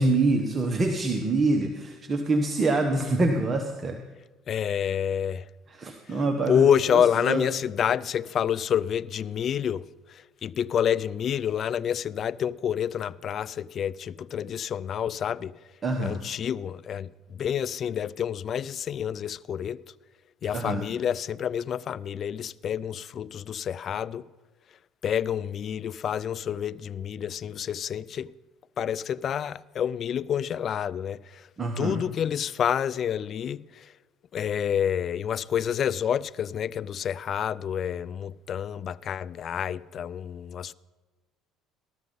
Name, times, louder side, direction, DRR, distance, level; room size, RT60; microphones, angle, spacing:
voice 1, 0.0-4.0 5.7-6.7 7.2-7.5 15.8-16.2 20.5-20.9 31.6-32.0, right 2 dB, 30° right, 1.2 m, -25 dB
voice 2, 4.5-5.5 6.5-9.8 10.1-15.5 16.0-19.8 20.4-24.3 25.0-28.3 28.8-31.4 31.8-33.9 34.3-40.7, left 8 dB, 50° left, 0.4 m, -28 dB
14.0 x 13.0 x 4.0 m
supercardioid pair, 80°, 0 cm